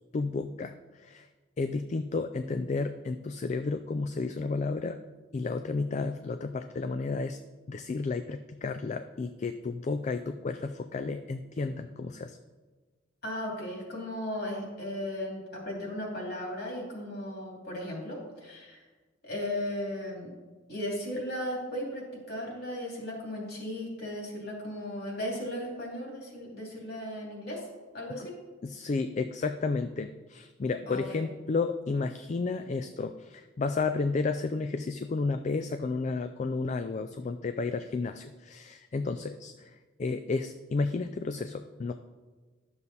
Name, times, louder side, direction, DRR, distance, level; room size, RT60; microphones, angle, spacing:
voice 1, 0.1-0.7 1.0-1.3 1.6-5.0 5.3-7.4 7.7-12.4 28.6-41.9, left 4 dB, 35° left, 9 dB, 0.3 m, -32 dB
voice 2, 13.2-18.9 19.2-20.3 20.7-27.7 27.9-28.3 30.9-31.2, left 1 dB, 55° left, -1 dB, 2.9 m, -36 dB
12.0 x 7.1 x 4.1 m, 1.3 s
head